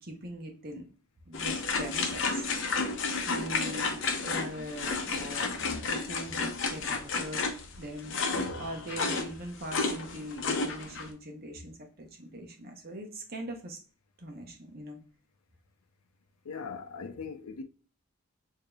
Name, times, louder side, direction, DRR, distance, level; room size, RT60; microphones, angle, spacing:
voice 1, 0.0-0.8 1.3-2.5 3.3-5.5 5.8-7.4 7.8-13.8 14.2-15.0, right 1 dB, 45° right, 0.9 m, -41 dB
sound 1, 1.3-11.1, left 4 dB, 60° left, 0.7 m, -32 dB
voice 2, 16.4-17.6, left 5 dB, 90° left, 0.6 m, -40 dB
4.9 x 2.8 x 2.3 m
head